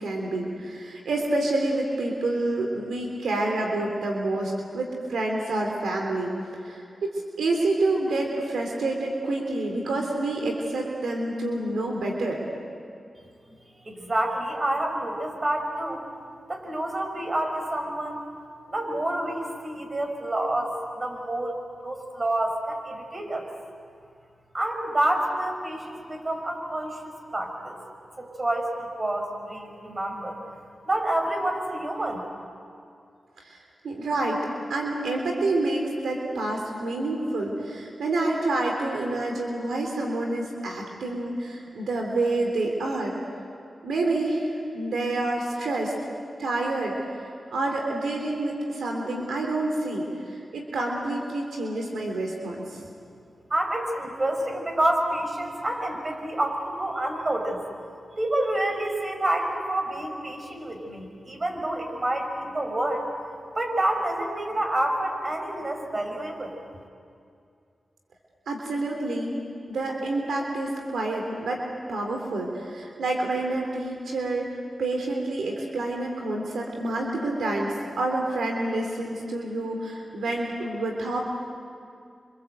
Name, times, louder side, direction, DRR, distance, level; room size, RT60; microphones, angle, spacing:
voice 1, 0.0-6.3 6.6-6.8 7.4-12.4 33.4-33.6 33.8-34.4 34.7-43.2 43.8-45.9 46.4-46.9 47.5-52.6 68.5-69.3 69.7-81.2, right 2 dB, 90° right, 1 dB, 3.5 m, -28 dB
voice 2, 13.8-16.0 16.5-18.2 18.7-23.5 24.5-27.8 28.2-30.4 30.8-32.3 53.5-57.6 58.2-63.1 63.5-66.5, right 1 dB, 40° right, 3 dB, 6.0 m, -28 dB
28.0 x 26.0 x 8.1 m, 2.4 s
cardioid pair, 50°, 0 cm